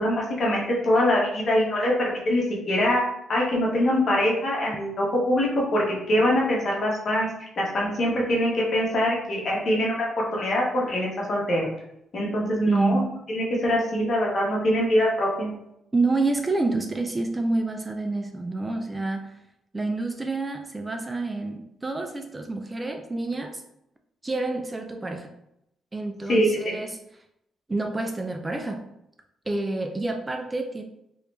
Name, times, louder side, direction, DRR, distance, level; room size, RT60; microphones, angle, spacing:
voice 1, 0.0-3.0 3.3-7.3 7.6-10.1 10.3-11.7 12.1-13.0 13.3-15.5 26.3-26.7, left 1 dB, 50° left, -3 dB, 1.3 m, -23 dB
voice 2, 12.7-13.1 15.9-19.4 19.7-23.6 24.2-25.3 25.9-27.0 27.7-28.8 29.5-30.8, right 2 dB, 20° right, 5 dB, 0.4 m, -28 dB
3.1 x 2.9 x 3.2 m, 0.81 s
cardioid pair, 90°, 0 cm